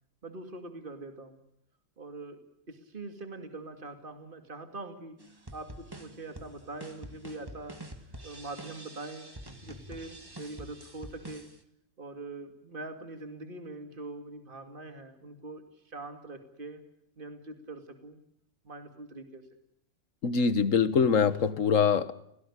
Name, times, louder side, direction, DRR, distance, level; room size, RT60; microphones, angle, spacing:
voice 1, 0.2-1.4 2.0-2.4 2.7-5.2 5.5-7.8 8.2-9.3 9.6-11.5 12.0-16.8 17.2-18.2 18.6-19.4, right 2 dB, 40° right, 6 dB, 2.6 m, -43 dB
sound 1, 5.2-11.6, right 1 dB, 15° right, 2.0 m, -46 dB
voice 2, 20.2-22.1, left 6 dB, 70° left, 14 dB, 1.7 m, -24 dB
30.0 x 18.0 x 9.9 m, 0.75 s
omnidirectional pair, 1.4 m